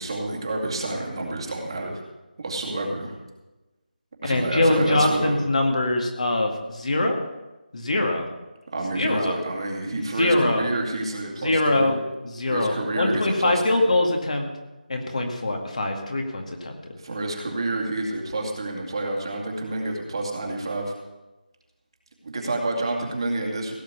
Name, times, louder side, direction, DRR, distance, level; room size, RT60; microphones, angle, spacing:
voice 1, 0.0-2.0 2.4-3.1 4.2-5.4 8.7-11.9 12.5-13.9 17.0-20.9 22.2-23.7, right 2 dB, 35° right, -1 dB, 2.4 m, -29 dB
voice 2, 4.2-7.2 7.7-8.3 9.0-9.4 10.2-10.7 11.4-14.5 14.9-16.8, left 2 dB, 50° left, 3 dB, 2.2 m, -23 dB
16.5 x 6.7 x 8.2 m, 1.1 s
figure-of-eight pair, 175°, 5 cm